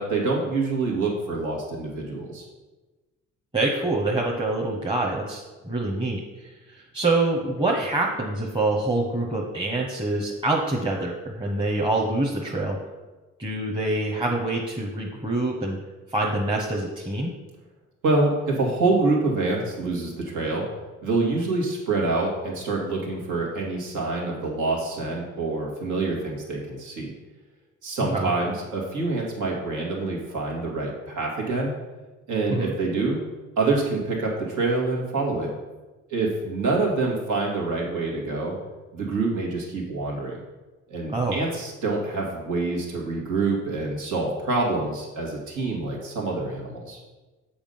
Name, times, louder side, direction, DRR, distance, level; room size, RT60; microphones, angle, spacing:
voice 1, 0.0-2.5 18.0-20.7 21.0-27.1 27.8-31.7 32.3-33.2 33.6-35.5 36.1-38.6 38.9-40.4 40.9-47.0, right 3 dB, 85° right, -2 dB, 2.0 m, -26 dB
voice 2, 3.5-6.2 6.7-12.8 13.4-15.8 16.1-17.3 28.1-28.3 32.5-32.7 41.1-41.4, right 2 dB, 15° right, -3 dB, 1.0 m, -25 dB
7.2 x 5.0 x 5.5 m, 1.2 s
cardioid pair, 90°, 30 cm